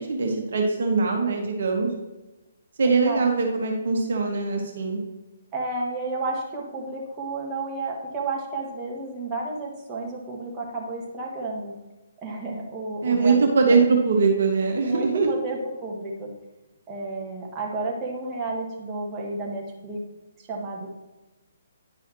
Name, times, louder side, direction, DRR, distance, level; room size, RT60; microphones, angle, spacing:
voice 1, 0.0-1.9 2.8-5.0 13.0-15.3, right 4 dB, 60° right, 1 dB, 1.4 m, -22 dB
voice 2, 2.8-3.2 5.5-11.7 12.2-13.9 14.8-16.3 16.9-20.0 20.4-20.9, right 2 dB, 20° right, -3 dB, 1.8 m, -32 dB
10.0 x 5.6 x 2.9 m, 1.1 s
figure-of-eight pair, 135°, 0 cm